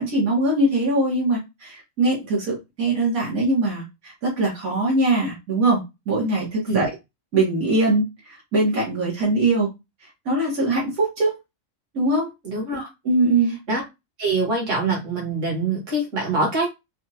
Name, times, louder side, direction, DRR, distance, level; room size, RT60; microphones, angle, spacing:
voice 1, 0.0-6.9 7.3-9.7 10.3-11.4 11.9-12.3 13.1-13.5, right 2 dB, 80° right, -4 dB, 1.9 m, -22 dB
voice 2, 12.4-12.9 13.7-13.8 14.2-16.7, right 3 dB, 60° right, -2 dB, 2.1 m, -24 dB
4.6 x 2.4 x 2.8 m, 0.22 s
omnidirectional pair, 1.5 m